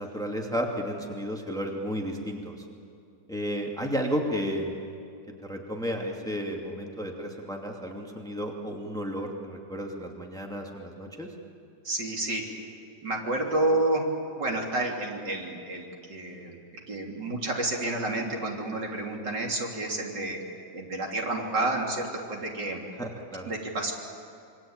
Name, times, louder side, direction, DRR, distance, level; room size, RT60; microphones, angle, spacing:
voice 1, 0.0-2.6 3.3-4.8 5.4-11.3 23.0-23.5, equal, ahead, 1 dB, 2.5 m, -32 dB
voice 2, 11.8-12.4 13.0-14.1 14.4-16.6 16.9-20.4 20.7-22.8 23.5-23.9, right 2 dB, 65° right, 0 dB, 3.9 m, -30 dB
27.0 x 23.5 x 9.0 m, 2.5 s
omnidirectional pair, 2.0 m